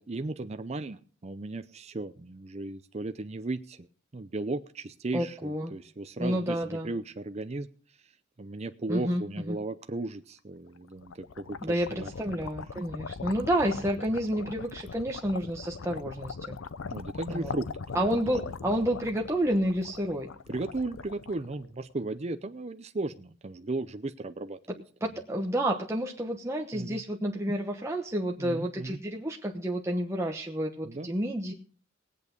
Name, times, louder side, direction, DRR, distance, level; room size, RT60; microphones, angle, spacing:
voice 1, 0.0-3.9 4.1-7.7 7.9-12.1 16.9-18.0 20.5-24.6 26.7-27.0 28.4-29.0 30.8-31.1, right 2 dB, 35° right, 8 dB, 0.6 m, -36 dB
voice 2, 5.1-5.7 6.2-6.9 8.9-9.6 11.6-16.6 17.3-17.5 17.9-20.3 25.0-31.5, right 1 dB, 15° right, 0 dB, 1.1 m, -30 dB
sound 1, 10.8-21.9, left 5 dB, 85° left, 0.6 m, -41 dB
19.0 x 8.2 x 5.3 m, 0.43 s
head